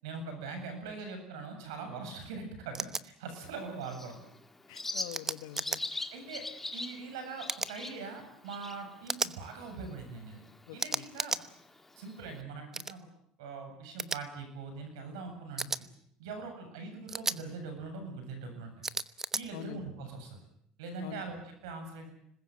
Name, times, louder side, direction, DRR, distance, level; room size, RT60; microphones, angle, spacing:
voice 1, 0.0-4.2 6.1-6.4 6.7-10.4 10.7-11.4 12.0-13.0 13.4-15.9 16.2-18.7 19.3-20.4 20.8-22.1, right 4 dB, 90° right, 6 dB, 7.9 m, -42 dB
sound 1, 2.7-3.0 5.1-5.8 7.5-7.7 9.1-9.3 10.8-11.4 12.7-12.9 14.0-14.2 15.6-15.8 17.1-17.4 18.8-19.4, right 3 dB, 20° right, 1.0 m, -34 dB
Bird, 3.4-12.4, left 2 dB, 10° left, 2.0 m, -44 dB
voice 2, 4.7-5.8 10.7-11.1 19.5-19.8 21.0-21.2, left 15 dB, 90° left, 13 dB, 1.3 m, -45 dB
26.5 x 20.5 x 8.0 m, 0.72 s
supercardioid pair, 95°, 2 cm